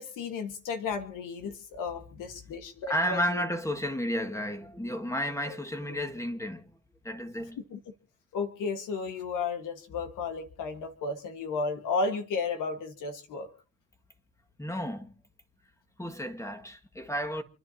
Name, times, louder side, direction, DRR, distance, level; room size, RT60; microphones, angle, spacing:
voice 1, 0.0-3.4 5.4-5.6 7.6-7.8 8.3-13.5, left 4 dB, 80° left, 1.7 m, -33 dB
voice 2, 2.9-6.8 7.0-7.6 14.6-15.1 16.0-17.4, equal, 10° left, 1.9 m, -32 dB
28.0 x 10.5 x 2.9 m
supercardioid pair, 75°, 31 cm